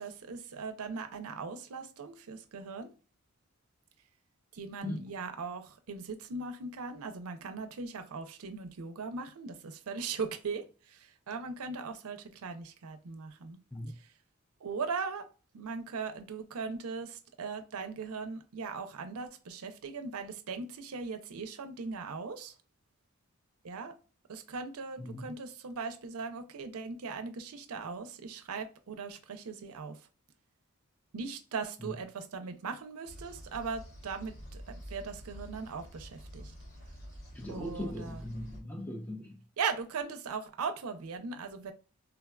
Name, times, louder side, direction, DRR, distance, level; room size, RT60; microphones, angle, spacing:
voice 1, 0.0-2.9 4.5-13.6 14.6-15.3 15.5-22.5 23.6-23.9 24.3-30.0 31.1-36.5 37.5-38.2 39.6-41.7, right 5 dB, 85° right, 0.5 m, -39 dB
voice 2, 25.0-25.4 31.8-31.9 37.3-39.4, left 1 dB, 5° left, 0.5 m, -39 dB
sound 1, 33.1-38.6, equal, 50° left, 1.1 m, -48 dB
3.5 x 2.2 x 2.3 m
head